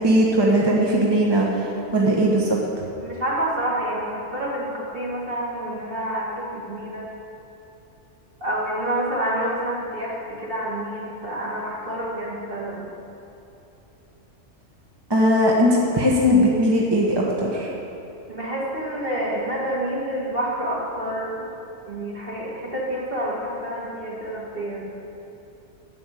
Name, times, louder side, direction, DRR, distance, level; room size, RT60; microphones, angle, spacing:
voice 1, 0.0-1.6 1.9-2.6 15.1-17.7, equal, 20° right, -3 dB, 1.2 m, -19 dB
voice 2, 3.0-7.1 8.4-12.9 18.3-21.5 21.8-24.9, right 1 dB, 45° right, -4 dB, 2.5 m, -28 dB
10.5 x 7.1 x 8.4 m, 2.9 s
omnidirectional pair, 1.3 m